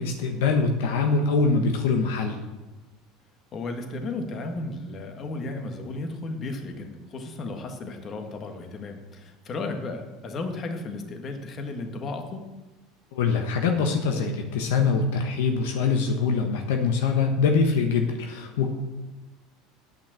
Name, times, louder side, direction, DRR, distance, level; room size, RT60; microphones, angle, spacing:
voice 1, 0.0-2.4 13.1-18.7, left 4 dB, 80° left, 4 dB, 1.1 m, -23 dB
voice 2, 3.5-12.4, left 2 dB, 40° left, 4 dB, 1.7 m, -34 dB
9.1 x 5.7 x 7.6 m, 1.1 s
supercardioid pair, 95°, 0 cm